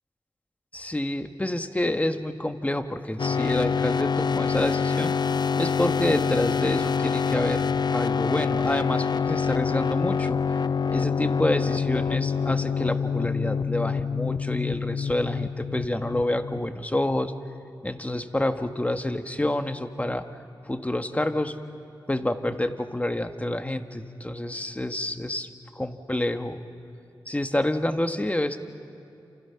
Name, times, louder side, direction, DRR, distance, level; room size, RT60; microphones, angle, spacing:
voice 1, 0.7-5.1 5.6-7.7 7.9-10.4 10.9-17.3 17.8-20.3 20.7-21.6 22.1-25.5 25.7-26.6 27.3-28.6, left 1 dB, 15° left, 7 dB, 1.5 m, -28 dB
sound 1, 3.2-16.7, left 6 dB, 55° left, 0.5 m, -26 dB
29.5 x 28.0 x 5.9 m, 2.8 s
cardioid pair, 55°, 9 cm